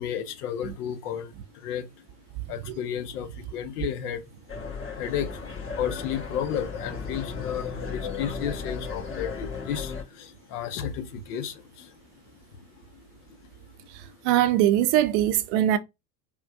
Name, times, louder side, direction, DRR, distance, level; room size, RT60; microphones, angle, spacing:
voice 1, 0.0-1.9 2.5-4.2 4.6-4.7 5.0-11.9 14.0-14.1, left 9 dB, 65° left, 0.8 m, -33 dB
sound 1, 4.5-10.0, left 5 dB, 25° left, 1.6 m, -35 dB
voice 2, 14.2-15.8, right 12 dB, 45° right, 0.5 m, -21 dB
4.3 x 2.3 x 2.2 m
figure-of-eight pair, 80°, 50 cm